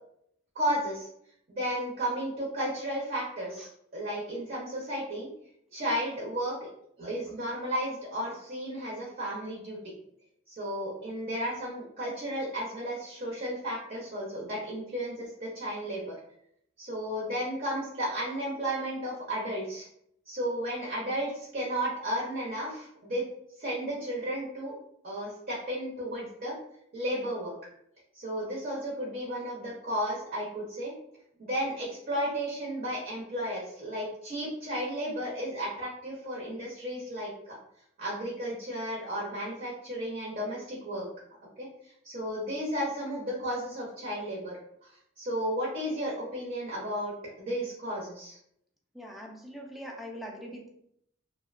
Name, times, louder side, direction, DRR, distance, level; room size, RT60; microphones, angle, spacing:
voice 1, 0.6-1.1 1.5-5.3 5.7-6.6 7.0-9.8 10.5-16.2 16.8-19.9 20.3-23.2 23.6-24.7 25.0-26.5 26.9-27.5 28.1-30.9 31.4-37.6 38.0-41.1 41.6-41.7 42.0-44.9 45.2-48.4, equal, 50° right, -4 dB, 0.6 m, -33 dB
voice 2, 48.9-50.7, equal, ahead, 0 dB, 0.3 m, -42 dB
2.7 x 2.1 x 2.3 m, 0.72 s
head